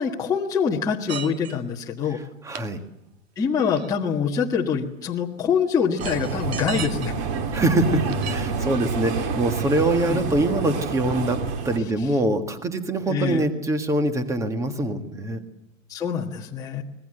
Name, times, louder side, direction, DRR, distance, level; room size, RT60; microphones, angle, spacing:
voice 1, 0.0-2.2 3.4-7.1 10.0-10.2 13.1-13.5 15.9-16.8, left 6 dB, 10° left, -2 dB, 1.5 m, -25 dB
sound 1, 1.1-1.7 2.5-2.6 3.6-4.1 5.5-5.6 5.9-7.1 8.0-8.3, right 9 dB, 50° right, 2.4 m, -35 dB
voice 2, 2.4-2.8 7.5-15.4, right 2 dB, 10° right, 9 dB, 1.6 m, -24 dB
sound 2, 6.0-11.8, right 4 dB, 30° right, 2.6 m, -28 dB
25.5 x 20.5 x 7.8 m, 0.85 s
hypercardioid pair, 155°, 38 cm